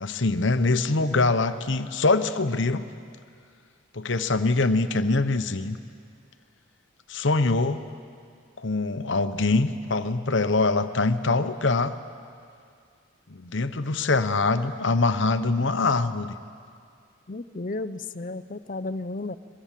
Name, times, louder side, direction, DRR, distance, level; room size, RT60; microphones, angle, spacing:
voice 1, 0.0-2.9 3.9-5.8 7.1-7.8 8.6-12.0 13.3-16.3, left 3 dB, 60° left, 11 dB, 0.9 m, -24 dB
voice 2, 17.3-19.4, left 2 dB, 40° left, 13 dB, 0.6 m, -33 dB
22.5 x 22.5 x 7.5 m, 2.3 s
head